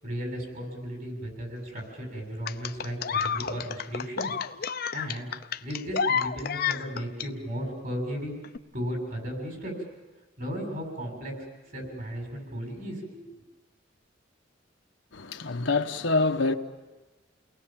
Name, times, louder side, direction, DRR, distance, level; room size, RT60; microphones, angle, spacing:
voice 1, 0.0-4.4 4.9-5.3 5.6-8.4 8.7-9.8 10.4-13.3, equal, 50° right, 7.1 m, -35 dB
sound 1, 2.5-7.3 8.4-8.6, left 6 dB, 55° left, 0.7 m, -30 dB
voice 2, 15.1-16.5, left 3 dB, 80° left, 1.1 m, -26 dB
29.0 x 20.0 x 7.4 m
head